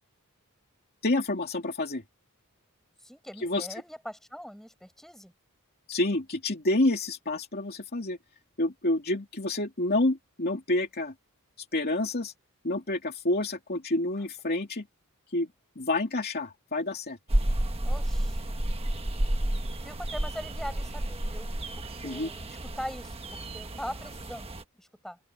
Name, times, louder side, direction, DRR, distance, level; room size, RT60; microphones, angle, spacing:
voice 1, 1.0-2.0 3.4-3.7 5.9-8.2 8.6-11.1 11.7-12.3 12.6-14.9 15.3-15.5 15.8-17.2 22.0-22.3, left 2 dB, 45° left, 2.8 m, -28 dB
voice 2, 3.0-5.3 17.8-18.5 19.8-23.2 23.5-25.2, equal, ahead, 6.6 m, -42 dB
sound 1, 17.3-24.6, right 1 dB, 25° right, 1.3 m, -31 dB
open air
head